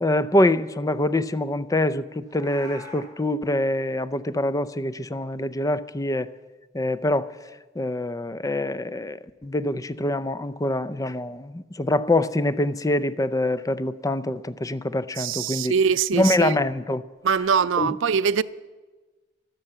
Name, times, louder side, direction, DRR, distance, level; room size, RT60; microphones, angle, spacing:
voice 1, 0.0-6.3 6.7-7.3 7.8-15.7 16.1-17.0 17.8-18.0, left 1 dB, 20° left, 0.5 m, -25 dB
Meow, 2.2-3.0, left 1 dB, 20° right, 6.5 m, -42 dB
voice 2, 15.2-16.5 17.2-18.4, right 6 dB, 85° right, 0.5 m, -22 dB
13.0 x 12.0 x 7.9 m
head